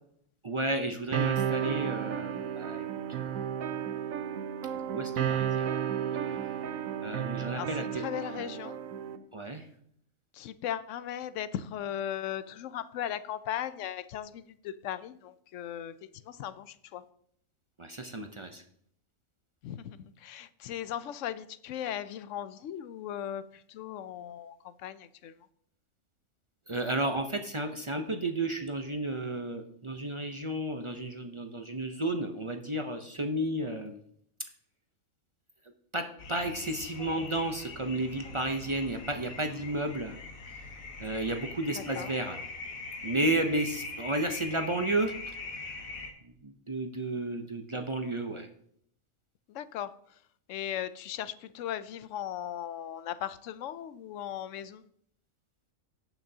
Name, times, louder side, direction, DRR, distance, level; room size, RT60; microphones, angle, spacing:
voice 1, 0.4-3.5 4.7-5.7 6.2-6.4 7.0-8.0 9.3-9.7 17.8-18.6 26.7-34.0 35.9-40.2 40.4-40.7 41.0-42.4 43.0-45.7 46.2-48.5, right 1 dB, 35° right, 5 dB, 0.5 m, -33 dB
sound 1, 1.1-9.2, right 9 dB, 80° right, 1.1 m, -33 dB
voice 2, 7.5-8.8 10.4-15.9 16.3-17.0 19.6-23.4 23.7-24.5 24.8-25.3 42.0-42.1 49.5-49.9 50.5-54.8, left 10 dB, 70° left, 14 dB, 0.9 m, -37 dB
sound 2, 36.2-46.1, left 3 dB, 90° left, 1.6 m, -42 dB
17.5 x 6.0 x 2.8 m, 0.66 s
omnidirectional pair, 1.4 m